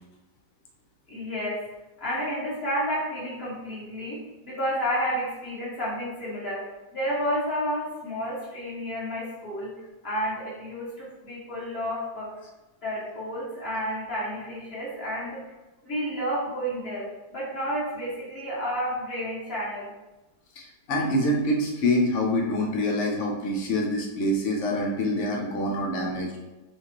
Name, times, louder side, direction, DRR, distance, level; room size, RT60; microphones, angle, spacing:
voice 1, 1.1-1.6 2.0-9.7 10.0-12.3 12.8-15.5 15.8-19.9, equal, 35° left, -8 dB, 1.6 m, -31 dB
voice 2, 20.6-26.3, left 1 dB, 90° left, -1 dB, 0.6 m, -26 dB
6.4 x 2.3 x 2.9 m, 1.1 s
omnidirectional pair, 2.1 m